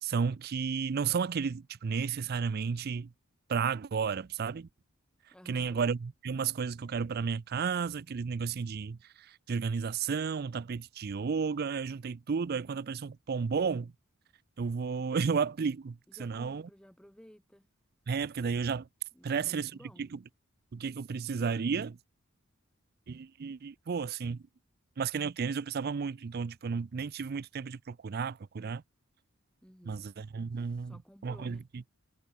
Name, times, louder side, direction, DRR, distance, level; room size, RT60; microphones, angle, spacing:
voice 1, 0.0-3.1 3.5-4.7 5.5-13.9 14.6-16.6 18.1-18.9 19.2-19.7 20.0-20.2 20.7-22.0 23.1-24.4 25.0-28.8 29.8-31.0 31.2-31.8, right 5 dB, 45° right, 0.4 m, -33 dB
voice 2, 5.3-5.8 16.1-17.7 19.1-20.1 29.6-30.1 30.5-31.7, equal, 5° left, 1.7 m, -55 dB
head